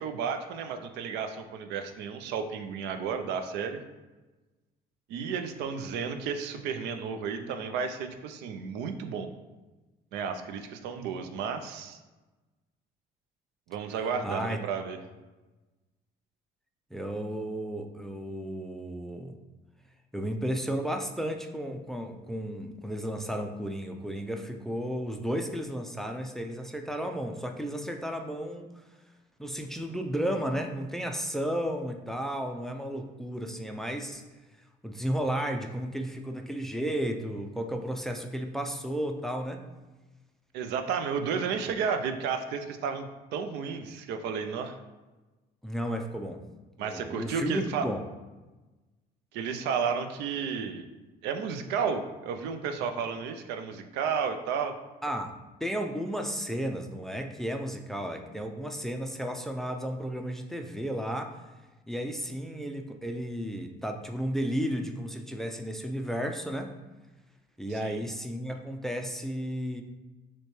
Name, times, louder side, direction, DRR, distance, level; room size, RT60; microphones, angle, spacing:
voice 1, 0.0-3.8 5.1-9.3 10.1-12.0 13.7-15.0 40.5-44.8 46.8-47.9 49.3-50.9 51.2-54.8 67.8-68.0, right 6 dB, 90° right, 7 dB, 0.4 m, -32 dB
voice 2, 14.2-14.6 16.9-19.3 20.1-28.7 29.4-34.2 34.8-39.6 45.6-46.4 46.8-48.0 55.0-55.3 55.6-61.3 61.9-66.7 67.6-69.8, equal, ahead, 4 dB, 0.3 m, -33 dB
6.4 x 2.2 x 3.0 m, 1.2 s
cardioid pair, 110°, 17 cm